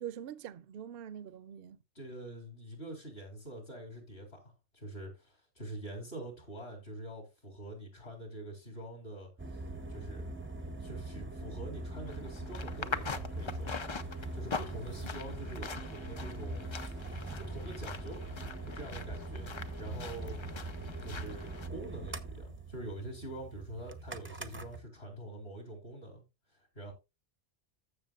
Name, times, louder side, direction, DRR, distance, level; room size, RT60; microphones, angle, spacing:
voice 1, 0.0-1.8, right 10 dB, 60° right, 0.7 m, -43 dB
voice 2, 1.9-9.6 9.9-10.3 10.8-13.7 14.3-16.6 17.0-18.2 18.7-19.5 19.8-20.4 21.0-26.2 26.5-26.9, right 1 dB, 60° left, 4.2 m, -45 dB
sound 1, 9.4-24.8, right 2 dB, 15° right, 0.5 m, -42 dB
sound 2, 12.1-21.7, left 5 dB, 40° left, 0.4 m, -43 dB
14.5 x 6.3 x 2.4 m
omnidirectional pair, 1.2 m